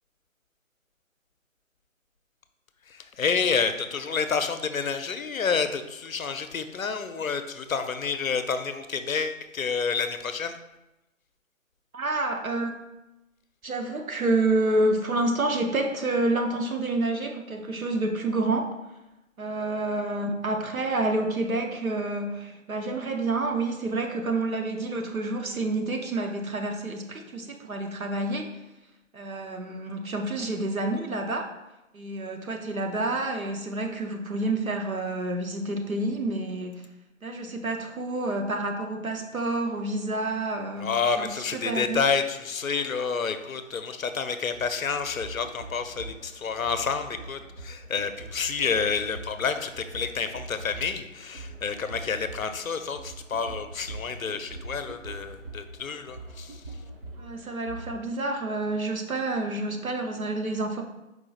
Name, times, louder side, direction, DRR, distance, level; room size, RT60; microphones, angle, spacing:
voice 1, 2.9-10.6 40.8-56.6, left 5 dB, 80° left, 9 dB, 0.5 m, -29 dB
voice 2, 11.9-12.7 13.6-18.7 19.4-28.5 29.1-31.5 31.9-36.9 37.2-42.0 57.2-60.8, right 2 dB, 90° right, 3 dB, 0.8 m, -28 dB
sound 1, 44.5-58.0, right 2 dB, 45° right, 0.6 m, -43 dB
4.6 x 2.4 x 3.9 m, 0.97 s
figure-of-eight pair, 150°, 41 cm